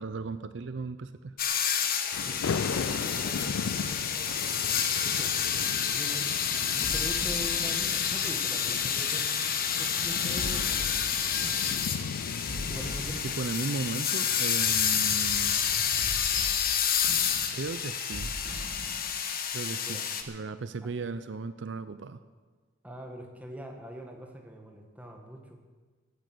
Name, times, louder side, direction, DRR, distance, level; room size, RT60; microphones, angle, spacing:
voice 1, 0.0-1.3 13.2-15.6 16.4-16.7 17.5-18.3 19.5-20.0 20.3-22.2, right 4 dB, 60° right, 12 dB, 0.5 m, -36 dB
sound 1, 1.4-20.2, left 8 dB, 50° left, 1.3 m, -29 dB
sound 2, 2.1-15.8, left 5 dB, 85° left, 0.4 m, -38 dB
voice 2, 2.2-4.3 5.0-5.3 5.9-6.2 6.5-10.8 11.4-11.5 12.7-13.3 19.8-20.1 22.8-25.6, equal, 10° right, 2 dB, 1.7 m, -43 dB
sound 3, 6.6-19.6, equal, 85° right, 4.2 m, -43 dB
15.0 x 10.5 x 7.8 m, 1.4 s
head